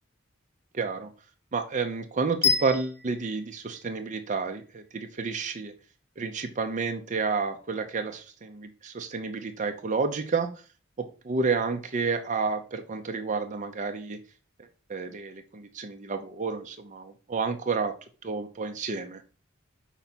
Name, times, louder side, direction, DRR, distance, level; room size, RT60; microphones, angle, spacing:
voice 1, 0.7-1.1 1.5-5.7 6.2-10.5 11.0-14.2 14.9-17.9 18.2-19.2, right 4 dB, 35° right, 6 dB, 0.6 m, -30 dB
sound 1, 2.4-4.5, left 5 dB, 15° left, 0.9 m, -29 dB
5.8 x 4.0 x 4.1 m, 0.37 s
head